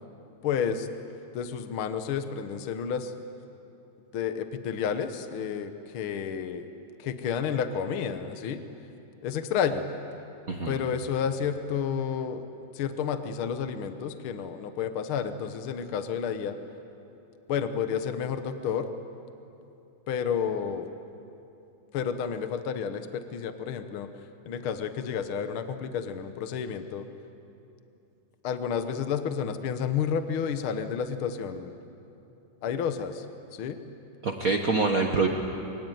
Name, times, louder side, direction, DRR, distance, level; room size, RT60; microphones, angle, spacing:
voice 1, 0.4-0.9 1.3-3.1 4.1-6.7 7.0-8.6 9.2-9.9 10.7-12.4 12.7-16.5 17.5-18.9 20.1-20.9 21.9-24.1 24.4-27.1 28.4-31.7 32.6-33.2 33.5-33.8, left 7 dB, 65° left, 8 dB, 1.3 m, -30 dB
voice 2, 10.5-10.8 34.2-35.3, right 3 dB, 65° right, 2 dB, 0.8 m, -25 dB
24.5 x 23.5 x 9.2 m, 2.9 s
omnidirectional pair, 3.7 m